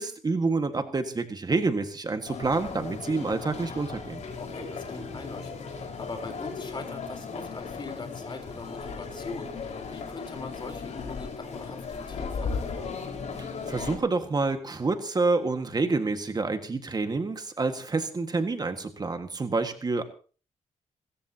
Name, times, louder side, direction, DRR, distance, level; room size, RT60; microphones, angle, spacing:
voice 1, 0.0-4.2 13.4-20.0, right 3 dB, 35° right, 7 dB, 1.7 m, -28 dB
sound 1, 2.2-14.0, left 5 dB, 70° left, 5.0 m, -36 dB
voice 2, 4.3-13.0, left 3 dB, 40° left, 6 dB, 4.0 m, -41 dB
28.0 x 14.0 x 2.9 m, 0.39 s
cardioid pair, 100°, 12 cm